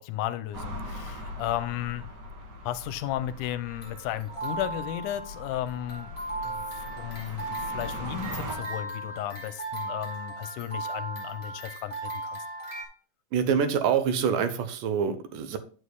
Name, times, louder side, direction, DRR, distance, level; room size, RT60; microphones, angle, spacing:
voice 1, 0.0-2.1 2.6-6.1 6.4-12.4, left 12 dB, 80° left, 13 dB, 2.1 m, -34 dB
sound 1, 0.5-8.6, left 1 dB, 40° right, 2.0 m, -41 dB
sound 2, 3.7-12.9, right 2 dB, 25° left, 3.4 m, -37 dB
voice 2, 13.3-15.6, right 7 dB, 90° right, 10 dB, 2.5 m, -26 dB
9.4 x 8.3 x 2.3 m, 0.39 s
omnidirectional pair, 3.6 m